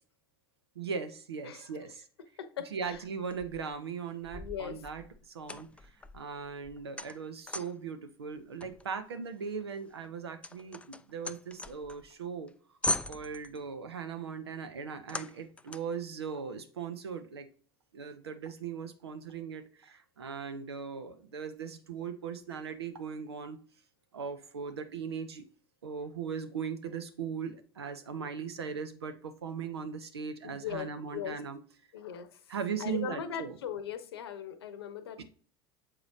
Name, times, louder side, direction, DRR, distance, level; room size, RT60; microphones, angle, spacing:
voice 1, 0.8-2.0 2.7-5.7 6.1-12.5 13.1-17.5 17.9-23.6 24.1-25.5 25.8-31.6 32.5-33.6 35.2-35.3, right 6 dB, 80° right, 0.8 m, -39 dB
voice 2, 1.4-1.9 2.4-3.0 4.3-4.8 30.4-31.4 31.9-32.4 32.8-35.2, left 9 dB, 75° left, 0.8 m, -39 dB
sound 1, 2.9-3.8 4.2-7.9 8.6-12.1 12.5-12.6 12.8-13.7 15.1-16.0, left 2 dB, 10° left, 0.3 m, -39 dB
7.4 x 4.9 x 2.7 m
figure-of-eight pair, 70°, 13 cm